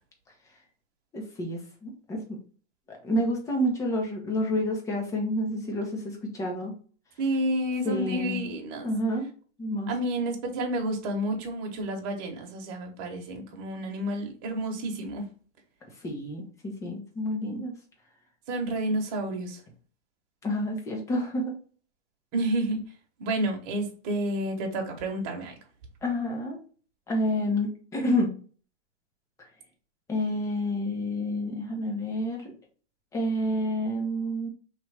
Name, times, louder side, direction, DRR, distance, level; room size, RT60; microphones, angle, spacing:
voice 1, 1.1-2.2 2.9-6.7 7.8-8.4 8.8-9.3 9.6-9.9 16.0-17.7 20.4-21.5 26.0-26.6 27.1-28.3 30.1-32.5 33.1-34.5, left 1 dB, 10° left, 1 dB, 0.6 m, -29 dB
voice 2, 7.2-8.9 9.9-15.2 18.5-19.6 22.3-22.8 23.2-25.5, right 1 dB, 35° right, 2 dB, 1.1 m, -30 dB
3.2 x 3.0 x 4.7 m, 0.41 s
hypercardioid pair, 155°, 37 cm